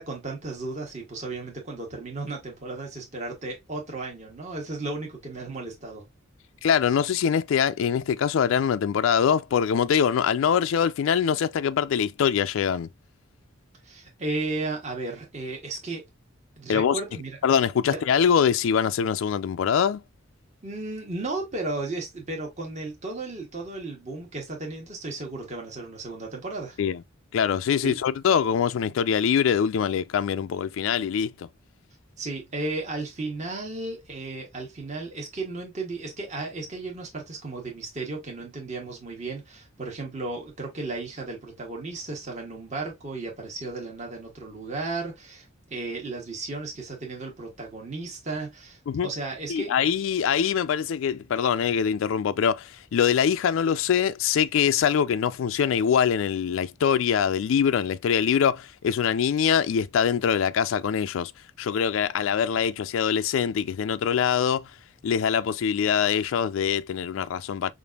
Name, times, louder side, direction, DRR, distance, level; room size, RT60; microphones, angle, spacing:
voice 1, 0.0-6.0 13.8-16.0 16.6-17.4 17.8-18.0 20.6-26.8 27.8-27.9 32.2-49.7, right 3 dB, 35° right, 1.2 m, -34 dB
voice 2, 6.6-12.9 16.7-17.0 17.4-20.0 26.8-27.0 27.3-31.5 48.9-49.1 49.5-61.3 61.6-64.7 65.0-67.7, left 7 dB, 65° left, 0.3 m, -23 dB
5.1 x 2.5 x 2.3 m
head